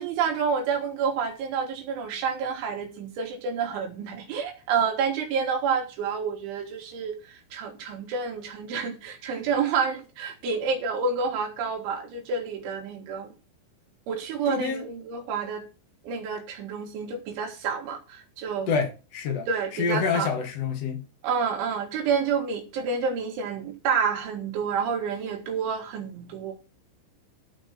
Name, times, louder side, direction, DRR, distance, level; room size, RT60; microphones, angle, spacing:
voice 1, 0.0-7.1 7.5-13.3 14.1-15.6 16.0-18.7 19.5-20.3 21.2-26.5, right 6 dB, 70° right, 4.0 m, -29 dB
voice 2, 14.5-14.8 18.7-21.0, left 5 dB, 85° left, 1.4 m, -27 dB
14.0 x 5.4 x 6.2 m
omnidirectional pair, 5.9 m